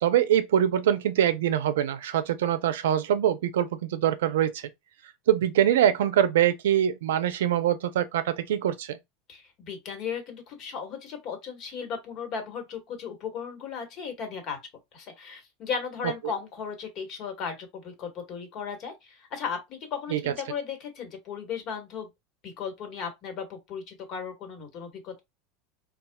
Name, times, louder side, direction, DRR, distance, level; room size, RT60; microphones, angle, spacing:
voice 1, 0.0-4.7 5.3-9.0 20.1-20.3, right 10 dB, 90° right, 0.5 m, -24 dB
voice 2, 9.3-14.6 14.9-22.1 22.4-25.2, left 6 dB, 50° left, 1.4 m, -36 dB
4.1 x 2.3 x 2.3 m
supercardioid pair, 115°, 0 cm